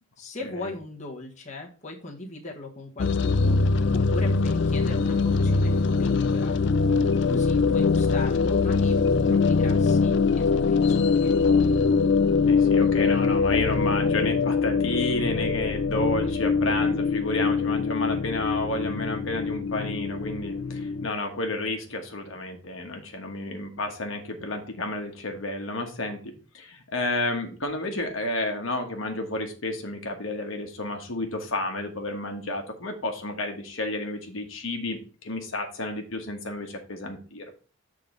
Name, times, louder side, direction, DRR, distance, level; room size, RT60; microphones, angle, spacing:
voice 1, 0.2-3.6 3.9-5.7 6.0-6.5 7.2-11.4, left 2 dB, 35° left, -1 dB, 1.3 m, -39 dB
sound 1, 3.0-21.1, left 4 dB, 55° left, 0.3 m, -23 dB
voice 2, 12.5-37.5, left 2 dB, 75° left, 3 dB, 1.3 m, -31 dB
7.5 x 3.8 x 5.1 m, 0.37 s
head